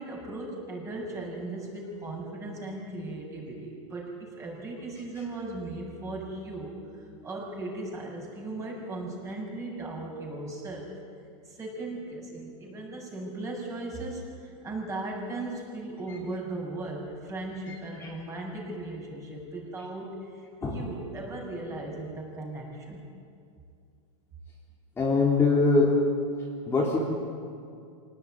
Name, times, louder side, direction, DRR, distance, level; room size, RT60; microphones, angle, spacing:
voice 1, 0.0-6.8 7.2-10.9 11.5-23.0, right 2 dB, 15° right, -1 dB, 7.3 m, -37 dB
voice 2, 17.7-18.1 20.6-20.9 25.0-25.9 26.7-27.0, left 3 dB, 15° left, -4 dB, 3.7 m, -23 dB
25.0 x 19.0 x 9.5 m, 2.4 s
supercardioid pair, 145°, 18 cm